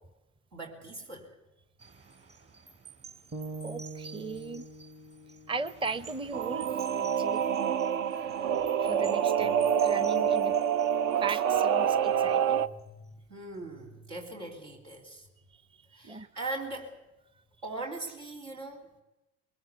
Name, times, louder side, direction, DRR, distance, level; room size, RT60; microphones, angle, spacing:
voice 1, 0.5-1.4 8.4-8.7 9.4-9.6 12.0-12.2 12.5-15.3 15.9-17.0 17.6-18.9, right 2 dB, 85° right, -2 dB, 3.6 m, -41 dB
sound 1, 1.8-12.4 12.8-13.1, right 5 dB, 45° right, 4.5 m, -52 dB
sound 2, 3.3-7.4, right 3 dB, 30° right, 1.2 m, -45 dB
voice 2, 3.6-4.7 5.5-7.4 8.8-10.5 11.2-12.6 16.0-16.3, right 4 dB, 15° right, 15 dB, 0.7 m, -37 dB
Singing / Musical instrument, 6.3-12.7, right 8 dB, 65° right, 0.8 m, -27 dB
21.0 x 19.0 x 8.1 m, 0.98 s
hypercardioid pair, 70°, 33 cm